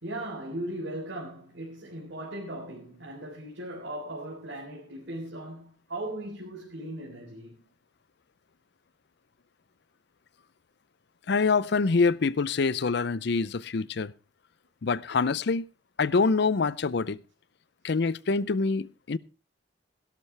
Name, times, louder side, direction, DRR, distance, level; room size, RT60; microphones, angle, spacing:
voice 1, 0.0-7.6, right 1 dB, 75° right, 3.7 m, -38 dB
voice 2, 11.3-14.1 14.8-15.6 16.0-17.2 17.8-19.2, left 4 dB, 60° left, 0.5 m, -25 dB
17.0 x 12.0 x 3.3 m
head